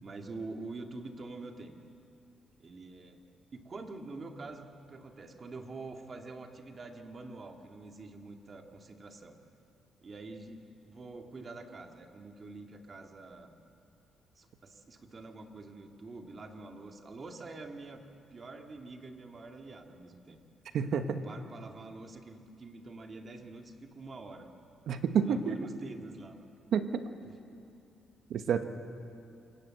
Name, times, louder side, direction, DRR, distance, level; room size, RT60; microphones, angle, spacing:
voice 1, 0.0-1.7 2.6-3.2 3.5-4.6 4.9-9.4 10.0-13.5 14.4-18.0 18.3-20.4 21.1-24.5 25.2-26.4, right 3 dB, 40° right, 4 dB, 2.2 m, -46 dB
voice 2, 20.7-21.3 24.9-25.6 26.7-27.1 28.3-28.6, right 7 dB, 70° right, 8 dB, 1.3 m, -29 dB
26.0 x 18.0 x 7.7 m, 2.6 s
cardioid pair, 90°, 0 cm